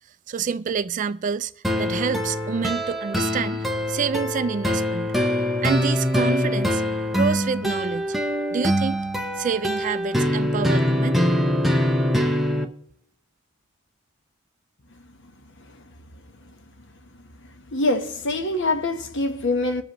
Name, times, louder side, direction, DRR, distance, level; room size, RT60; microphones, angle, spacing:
voice 1, 0.3-1.5 1.8-5.1 5.6-6.8 7.1-8.1 8.5-9.0 9.4-11.2, right 6 dB, 35° right, 0.3 m, -27 dB
sound 1, 1.6-12.6, equal, ahead, 0.7 m, -23 dB
voice 2, 17.7-19.8, left 2 dB, 55° left, 1.0 m, -24 dB
21.5 x 7.6 x 3.0 m
head